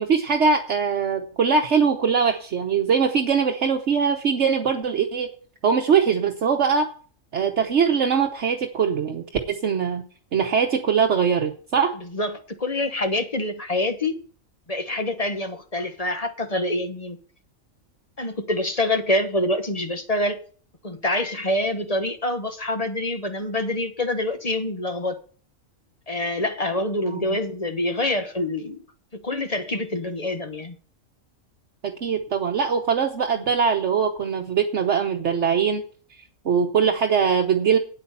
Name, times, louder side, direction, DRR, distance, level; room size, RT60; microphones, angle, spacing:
voice 1, 0.0-5.3 5.6-6.9 7.3-10.0 10.3-11.9 27.1-27.4 31.8-35.8 36.4-37.8, right 6 dB, 65° right, 3 dB, 1.3 m, -22 dB
voice 2, 12.1-14.2 14.7-17.2 18.2-20.4 20.8-25.2 26.1-28.8 29.2-30.7, left 1 dB, 30° left, 8 dB, 1.2 m, -26 dB
9.0 x 8.6 x 5.6 m, 0.43 s
omnidirectional pair, 1.3 m